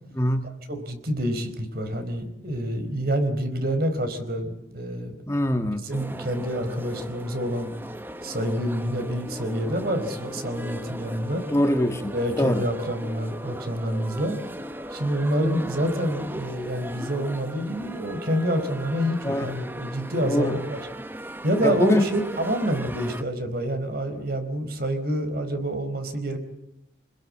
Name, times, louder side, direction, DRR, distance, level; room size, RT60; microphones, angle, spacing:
voice 1, 0.2-0.5 5.3-5.8 11.5-12.1 12.4-12.6 19.2-19.5 20.2-20.6 21.6-22.0, equal, 15° left, 7 dB, 1.7 m, -23 dB
voice 2, 0.7-5.2 5.8-7.7 8.2-11.4 12.1-14.4 14.9-20.8 21.4-26.4, equal, 55° right, 8 dB, 4.6 m, -27 dB
sound 1, 5.9-23.2, right 1 dB, 10° right, 1.1 m, -38 dB
27.0 x 21.0 x 8.6 m, 0.86 s
head